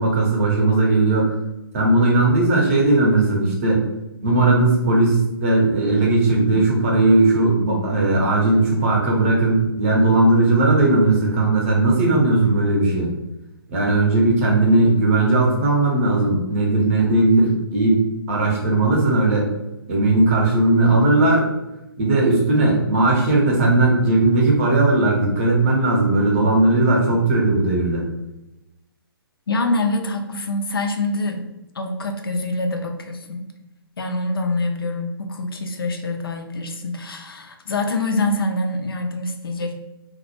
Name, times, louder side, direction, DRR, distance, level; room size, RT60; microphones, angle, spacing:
voice 1, 0.0-1.3 1.7-3.8 4.2-13.1 13.7-19.5 19.9-21.5 22.0-28.0, right 2 dB, 35° right, -2 dB, 0.6 m, -17 dB
voice 2, 29.5-31.5 31.7-33.5 34.0-39.8, left 2 dB, 65° left, 5 dB, 0.4 m, -25 dB
2.1 x 2.1 x 2.9 m, 0.93 s
figure-of-eight pair, 130°, 13 cm